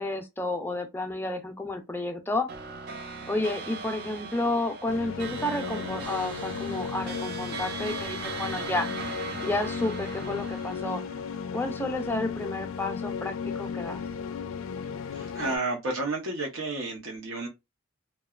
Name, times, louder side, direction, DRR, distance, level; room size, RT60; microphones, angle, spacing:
voice 1, 0.0-2.5 3.3-8.9 9.4-11.0 11.5-14.0, left 2 dB, 10° left, 0.4 m, -31 dB
sound 1, 2.5-12.1, right 4 dB, 50° right, 0.4 m, -39 dB
sound 2, 4.9-15.6, left 6 dB, 85° left, 0.3 m, -35 dB
voice 2, 15.1-17.5, right 2 dB, 80° right, 0.7 m, -31 dB
2.8 x 2.2 x 2.3 m
head